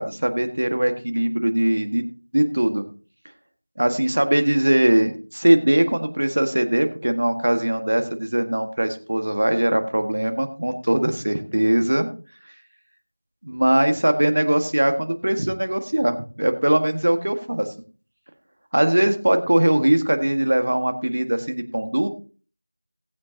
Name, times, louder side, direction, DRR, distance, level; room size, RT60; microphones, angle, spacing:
voice 1, 0.0-2.0 2.3-2.8 3.8-12.1 13.4-17.7 18.7-22.1, right 1 dB, 35° right, 7 dB, 1.7 m, -21 dB
18.5 x 8.1 x 2.9 m, 0.37 s
figure-of-eight pair, 180°, 0 cm